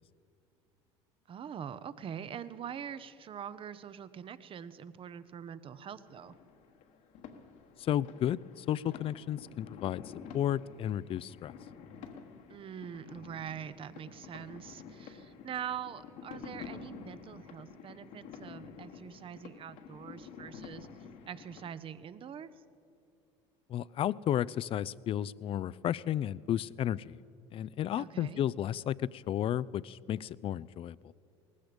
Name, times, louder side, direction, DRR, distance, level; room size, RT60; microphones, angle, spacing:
voice 1, 1.3-6.3 12.5-20.9 21.3-22.5 28.0-28.4, right 8 dB, 40° right, 15 dB, 0.8 m, -43 dB
sound 1, 6.1-21.7, left 6 dB, 65° left, 1.4 m, -50 dB
voice 2, 7.8-10.0 10.3-11.5 23.7-27.2 27.5-31.1, left 11 dB, 40° left, 20 dB, 0.4 m, -33 dB
18.5 x 15.0 x 5.1 m, 2.6 s
supercardioid pair, 80°, 14 cm